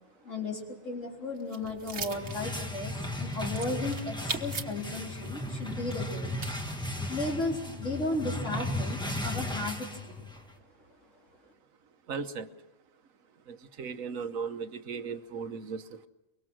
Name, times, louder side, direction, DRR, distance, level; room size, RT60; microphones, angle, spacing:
voice 1, 0.2-6.4 7.1-10.3, left 2 dB, 60° left, -1 dB, 4.2 m, -35 dB
sound 1, 1.3-7.5, right 5 dB, 50° right, 1.6 m, -41 dB
sound 2, 1.9-10.5, left 1 dB, 5° left, 1.6 m, -36 dB
voice 2, 12.1-12.5 13.5-16.1, right 5 dB, 70° right, 9 dB, 1.5 m, -37 dB
24.0 x 22.5 x 6.3 m, 1.0 s
omnidirectional pair, 1.5 m